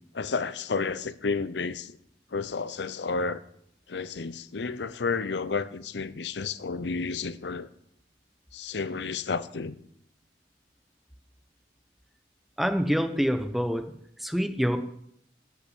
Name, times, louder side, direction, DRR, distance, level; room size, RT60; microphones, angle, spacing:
voice 1, 0.1-2.0 2.3-3.4 3.9-7.7 8.5-9.8, left 4 dB, 75° left, 0.6 m, -31 dB
voice 2, 12.6-13.9 14.2-14.8, equal, ahead, 0.8 m, -26 dB
10.5 x 5.9 x 8.4 m
head